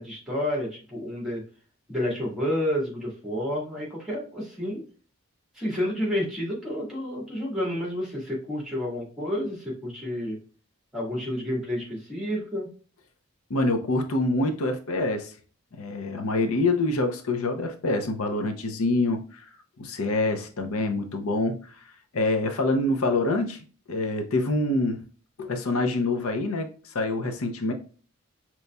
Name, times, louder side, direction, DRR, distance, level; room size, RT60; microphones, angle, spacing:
voice 1, 0.0-1.4 1.9-4.8 5.5-10.4 10.9-12.7, left 1 dB, ahead, -3 dB, 1.4 m, -30 dB
voice 2, 13.5-15.3 15.8-19.4 19.8-21.5 22.1-25.0 25.4-27.7, left 2 dB, 85° left, 5 dB, 0.6 m, -26 dB
5.2 x 3.0 x 2.2 m, 0.39 s
head